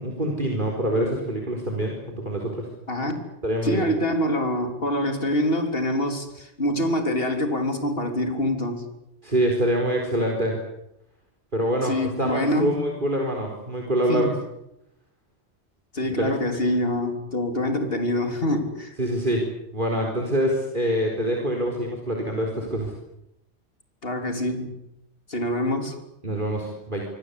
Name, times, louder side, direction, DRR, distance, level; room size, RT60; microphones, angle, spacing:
voice 1, 0.0-2.7 3.4-3.9 9.2-10.6 11.5-14.3 16.2-16.3 19.0-19.5 19.7-22.9 26.2-27.0, right 1 dB, 45° right, 1 dB, 4.5 m, -25 dB
voice 2, 2.9-3.2 3.6-8.8 11.8-12.8 14.1-14.3 15.9-19.0 24.0-24.8 25.3-26.0, left 1 dB, 55° left, 6 dB, 3.8 m, -25 dB
25.0 x 25.0 x 8.3 m, 0.83 s
omnidirectional pair, 1.1 m